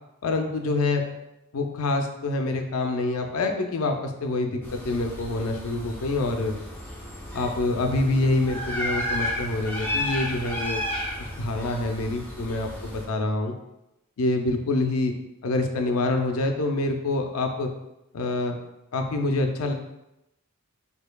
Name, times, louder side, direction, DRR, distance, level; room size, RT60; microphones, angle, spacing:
voice 1, 0.2-1.0 1.5-6.6 7.3-10.8 11.2-13.6 14.2-15.1 15.4-17.7 18.1-18.6 18.9-19.7, left 2 dB, 85° left, 4 dB, 0.5 m, -26 dB
sound 1, 4.6-13.1, left 1 dB, 10° left, 0.7 m, -33 dB
4.4 x 2.8 x 2.2 m, 0.89 s
head